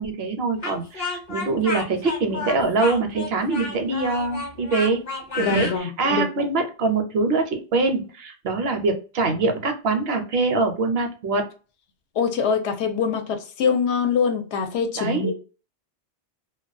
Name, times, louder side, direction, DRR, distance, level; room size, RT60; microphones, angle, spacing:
voice 1, 0.0-5.0 5.3-11.4 15.0-15.3, right 3 dB, 70° right, 0.8 m, -24 dB
Speech, 0.6-5.8, left 3 dB, 45° left, 0.7 m, -31 dB
voice 2, 5.4-6.3 12.2-15.4, left 5 dB, 75° left, 0.8 m, -24 dB
2.2 x 2.2 x 2.4 m
omnidirectional pair, 1.2 m